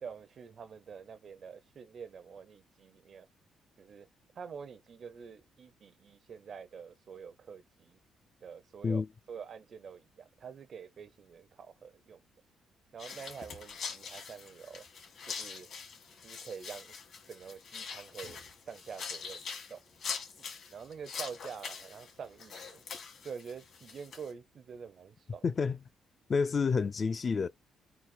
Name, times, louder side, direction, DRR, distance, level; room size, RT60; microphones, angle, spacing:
voice 1, 0.0-3.3 3.8-4.1 4.3-8.0 8.4-12.2 12.9-14.9 15.3-15.7 16.2-16.9 17.3-19.4 19.7-19.8 20.4-22.8 23.2-25.4, right 6 dB, 55° right, 0.5 m, -47 dB
sound 1, 13.0-24.3, left 5 dB, 60° left, 1.8 m, -44 dB
voice 2, 25.4-25.8 26.3-27.5, left 5 dB, 40° left, 0.3 m, -29 dB
4.0 x 2.3 x 4.2 m
cardioid pair, 90°, 0 cm